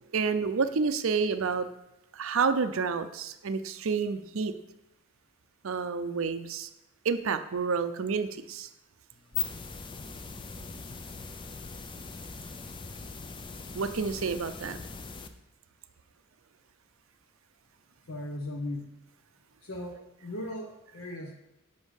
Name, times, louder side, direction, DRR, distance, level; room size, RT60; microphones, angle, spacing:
voice 1, 0.1-1.7 2.1-4.5 5.6-6.7 7.0-8.7 13.7-14.8, right 5 dB, 65° right, 10 dB, 0.5 m, -29 dB
sound 1, 9.1-15.3, left 5 dB, 20° left, 0.4 m, -40 dB
voice 2, 18.1-19.0 19.6-21.3, left 1 dB, 65° left, 2 dB, 0.8 m, -38 dB
6.2 x 5.3 x 6.4 m, 0.89 s
head